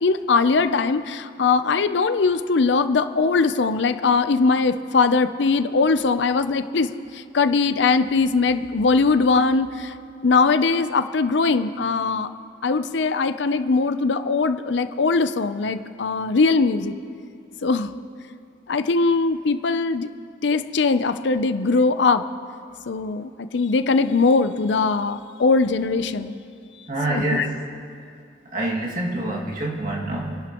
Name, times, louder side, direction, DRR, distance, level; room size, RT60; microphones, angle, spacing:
voice 1, 0.0-9.9 10.2-12.3 12.6-17.0 17.6-17.9 18.7-20.1 20.4-22.2 22.9-26.3 27.1-27.5, left 4 dB, 70° left, 11 dB, 0.6 m, -21 dB
voice 2, 26.9-27.6 28.5-30.4, right 2 dB, 45° right, -3 dB, 2.2 m, -26 dB
28.5 x 11.5 x 3.0 m, 2.3 s
head